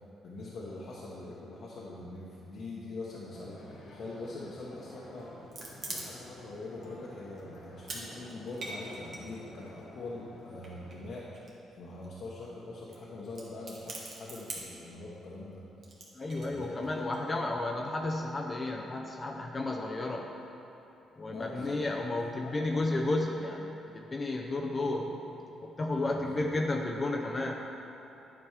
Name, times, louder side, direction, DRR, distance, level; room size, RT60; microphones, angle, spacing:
voice 1, 0.2-5.3 5.9-11.3 11.8-15.6 16.3-17.4 21.3-22.6 26.1-26.5, left 2 dB, 65° left, -7 dB, 1.1 m, -43 dB
sound 1, 3.3-11.0, left 1 dB, 85° left, 1.9 m, -51 dB
sound 2, 5.3-6.5 6.8-6.9 7.4-8.0 8.3-9.9 10.6-11.7 12.0-12.1 12.3-12.5 12.9-13.0 13.3-14.8 15.8-17.2, right 2 dB, 55° right, 1.7 m, -43 dB
voice 2, 16.2-20.3 21.2-25.2 25.6-27.6, left 2 dB, 30° left, 1 dB, 0.6 m, -32 dB
9.6 x 5.3 x 4.8 m, 3.0 s
cardioid pair, 90°, 0 cm